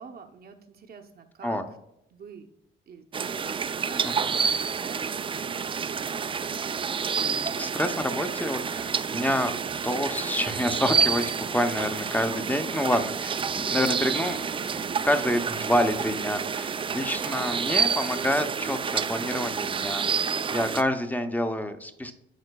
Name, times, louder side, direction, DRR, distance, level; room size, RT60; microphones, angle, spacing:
voice 1, 0.0-1.6 2.1-2.5 2.9-6.2 12.6-13.0 16.6-17.0, right 5 dB, 50° right, 4 dB, 0.8 m, -47 dB
sound 1, 3.1-20.8, right 6 dB, 25° right, 0.3 m, -29 dB
voice 2, 7.2-9.6 9.8-22.1, left 1 dB, 10° left, 8 dB, 0.7 m, -28 dB
11.0 x 3.8 x 2.2 m, 0.82 s
cardioid pair, 90°, 20 cm